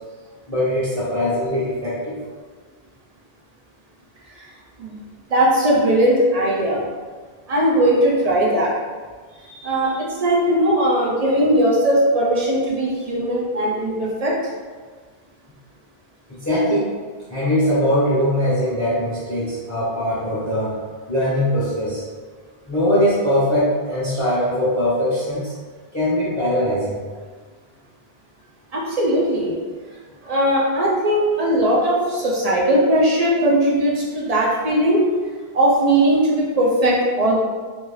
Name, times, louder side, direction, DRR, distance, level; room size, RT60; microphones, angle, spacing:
voice 1, 0.5-2.2 9.4-10.1 16.4-16.9 17.3-20.7 21.1-22.0 22.7-25.5 25.9-27.0, equal, 20° left, -9 dB, 0.7 m, -21 dB
voice 2, 5.3-6.8 7.5-8.7 9.6-9.9 10.2-14.3 28.7-29.5 30.2-35.0 35.5-37.4, right 1 dB, 50° right, -4 dB, 0.5 m, -18 dB
2.5 x 2.3 x 3.1 m, 1.5 s
omnidirectional pair, 1.0 m